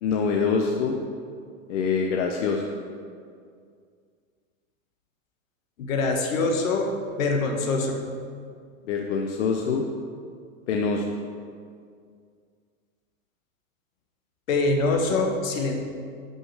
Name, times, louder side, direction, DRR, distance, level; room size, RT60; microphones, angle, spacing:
voice 1, 0.0-1.0 1.7-2.6 8.9-9.8 10.7-11.1, left 5 dB, 60° left, 2 dB, 0.9 m, -25 dB
voice 2, 5.8-6.9 7.2-8.0 14.5-15.7, left 3 dB, 80° left, 2 dB, 1.6 m, -24 dB
11.0 x 5.6 x 4.8 m, 2.2 s
supercardioid pair, 175°, 40 cm